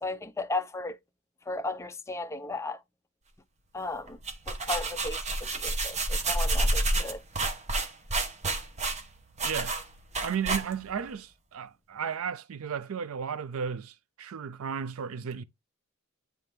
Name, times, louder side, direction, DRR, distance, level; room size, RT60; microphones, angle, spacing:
voice 1, 0.0-1.0 1.5-2.8 3.7-4.2 4.5-7.2, left 2 dB, 15° left, 0.5 m, -35 dB
sound 1, 4.1-11.0, right 2 dB, 35° right, 0.9 m, -29 dB
voice 2, 9.4-9.8 10.2-15.4, right 7 dB, 75° right, 0.4 m, -34 dB
8.9 x 3.4 x 3.3 m
head